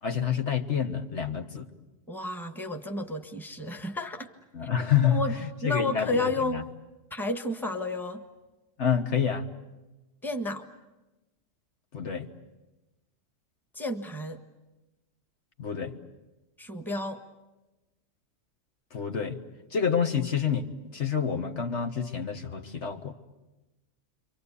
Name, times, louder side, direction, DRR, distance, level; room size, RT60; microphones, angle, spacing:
voice 1, 0.0-1.7 4.5-6.6 8.8-9.5 11.9-12.3 15.6-15.9 18.9-19.4 19.7-23.1, left 7 dB, 60° left, 5 dB, 1.6 m, -28 dB
voice 2, 2.1-4.3 5.0-5.3 5.6-6.6 7.1-8.2 10.2-10.7 13.7-14.4 16.6-17.2, left 2 dB, ahead, 6 dB, 1.5 m, -31 dB
28.5 x 24.5 x 8.4 m, 1.1 s
omnidirectional pair, 1.3 m